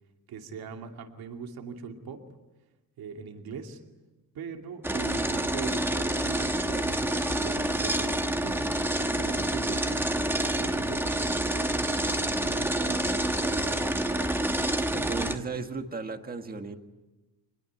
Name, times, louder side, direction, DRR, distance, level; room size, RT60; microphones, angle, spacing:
voice 1, 0.3-2.2 3.0-3.8 4.3-8.7 9.0-15.4, right 5 dB, 75° right, 4 dB, 2.7 m, -41 dB
sound 1, 4.8-15.4, right 1 dB, 5° right, 1.2 m, -28 dB
voice 2, 14.9-16.8, right 4 dB, 25° right, 6 dB, 1.6 m, -35 dB
26.0 x 21.0 x 9.6 m, 1.1 s
cardioid pair, 170°, 36 cm